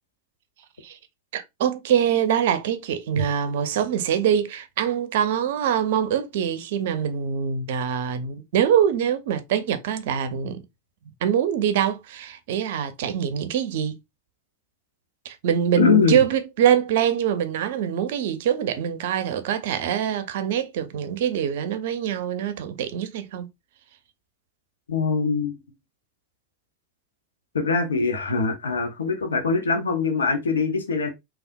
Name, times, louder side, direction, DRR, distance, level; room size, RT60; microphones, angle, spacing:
voice 1, 1.3-10.6 11.2-14.0 15.2-23.5, right 9 dB, 65° right, 0.5 m, -24 dB
voice 2, 15.8-16.2 24.9-25.6 27.5-31.1, left 5 dB, 80° left, 0.7 m, -22 dB
3.4 x 2.4 x 2.5 m
hypercardioid pair, 90°, 0 cm